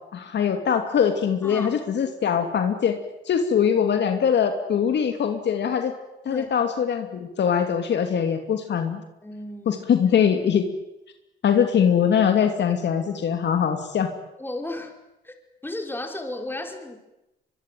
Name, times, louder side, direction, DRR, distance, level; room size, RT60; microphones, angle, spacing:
voice 1, 0.1-3.0 3.3-5.9 6.2-9.0 9.7-10.7 11.4-14.1, left 7 dB, 60° left, 6 dB, 2.7 m, -22 dB
voice 2, 1.4-1.7 6.3-6.5 9.2-9.8 14.4-14.9 15.2-15.3 15.6-17.0, left 1 dB, 10° left, 4 dB, 5.1 m, -34 dB
24.0 x 23.5 x 9.3 m, 0.93 s
cardioid pair, 90°, 20 cm